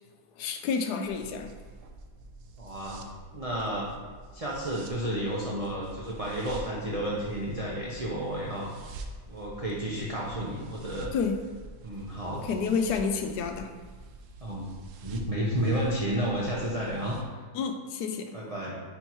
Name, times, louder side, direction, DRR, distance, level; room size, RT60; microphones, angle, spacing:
voice 1, 0.4-1.5 11.1-11.4 12.3-13.8 17.5-18.4, left 5 dB, 75° left, 5 dB, 1.1 m, -30 dB
sound 1, 1.0-17.2, right 2 dB, 70° right, 0.8 m, -46 dB
voice 2, 2.6-3.0 3.3-3.9 4.3-8.7 9.3-11.1 11.8-12.4 14.4-14.7 15.0-17.4 18.3-18.7, right 1 dB, 35° right, -5 dB, 0.6 m, -31 dB
9.6 x 3.5 x 3.0 m, 1.5 s
omnidirectional pair, 1.8 m